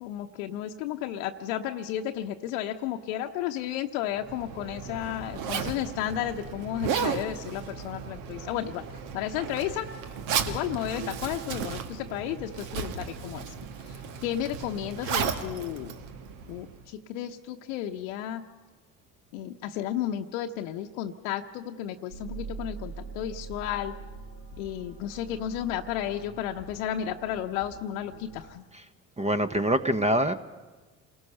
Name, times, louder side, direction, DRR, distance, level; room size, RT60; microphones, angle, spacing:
voice 1, 0.0-8.8 9.1-9.9 10.5-13.4 14.2-15.9 16.5-16.7 17.1-18.4 19.3-23.9 24.6-28.6, left 11 dB, 65° left, 4 dB, 0.9 m, -33 dB
Zipper (clothing), 4.1-16.8, right 7 dB, 65° right, 1.6 m, -34 dB
sound 1, 22.1-28.4, right 4 dB, 85° right, 7.4 m, -43 dB
voice 2, 29.2-30.3, right 1 dB, 15° right, 11 dB, 1.0 m, -24 dB
28.0 x 19.0 x 5.7 m, 1.3 s
figure-of-eight pair, 60°, 44 cm